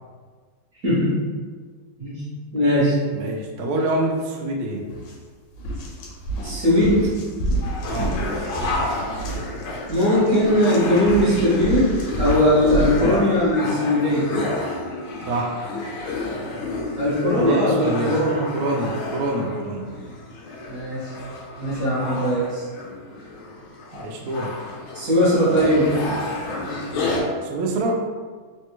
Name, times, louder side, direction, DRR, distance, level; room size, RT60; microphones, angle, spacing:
voice 1, 0.8-1.2 2.0-2.2 2.5-3.0 6.4-7.1 9.9-14.3 17.0-18.5 20.7-21.1 21.6-22.7 24.9-26.0, equal, 60° right, -8 dB, 1.0 m, -19 dB
voice 2, 3.1-4.9 7.9-8.1 13.0-13.2 15.3-15.6 17.4-18.2 18.5-19.9 23.9-24.6 27.4-28.0, right 1 dB, 90° right, 1 dB, 0.8 m, -26 dB
sound 1, 4.9-5.1 5.5-13.1, right 1 dB, 75° left, 1.1 m, -29 dB
sound 2, 7.6-27.2, left 2 dB, 90° left, 1.4 m, -31 dB
3.3 x 2.3 x 2.9 m, 1.5 s
omnidirectional pair, 2.2 m